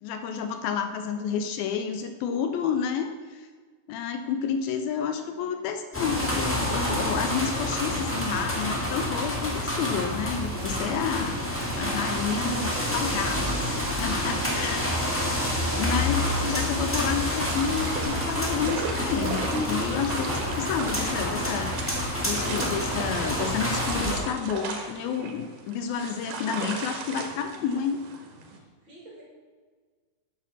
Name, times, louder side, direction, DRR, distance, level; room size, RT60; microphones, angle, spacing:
voice 1, 0.0-3.5 3.9-13.7 14.0-15.0 15.8-28.0, left 7 dB, 80° left, 8 dB, 2.4 m, -30 dB
voice 2, 4.9-5.6 12.1-13.6 14.3-15.2 28.8-29.2, right 1 dB, 35° right, -3 dB, 2.4 m, -45 dB
sound 1, 5.9-24.1, left 1 dB, 15° left, 0.4 m, -28 dB
sound 2, 17.5-28.6, right 4 dB, 80° right, 3.4 m, -36 dB
8.7 x 8.6 x 7.1 m, 1.5 s
omnidirectional pair, 4.5 m